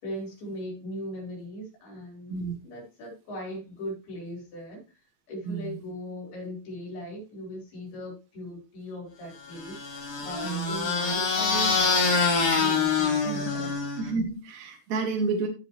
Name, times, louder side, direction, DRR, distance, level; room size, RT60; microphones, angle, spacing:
voice 1, 0.0-4.8 5.3-13.7, equal, 70° left, -1 dB, 6.1 m, -39 dB
voice 2, 5.5-5.8 10.4-10.8 14.0-15.5, right 4 dB, 55° right, 2 dB, 2.4 m, -30 dB
sound 1, 9.6-14.1, left 4 dB, 40° left, 4.1 m, -25 dB
15.5 x 5.4 x 3.1 m, 0.32 s
omnidirectional pair, 4.7 m